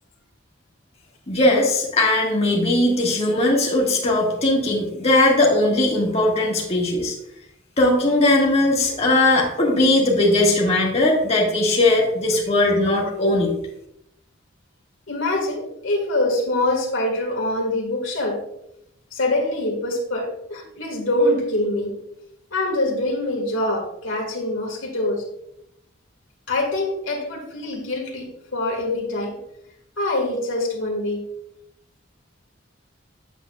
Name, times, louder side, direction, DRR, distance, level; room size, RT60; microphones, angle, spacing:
voice 1, 1.3-7.1 7.8-13.5, left 2 dB, 35° left, -2 dB, 1.5 m, -19 dB
voice 2, 15.1-18.4 19.1-21.9 22.5-25.2 26.5-28.3 28.5-29.3 30.0-31.3, left 1 dB, 90° left, 1 dB, 1.7 m, -24 dB
8.3 x 7.2 x 2.3 m, 0.80 s
head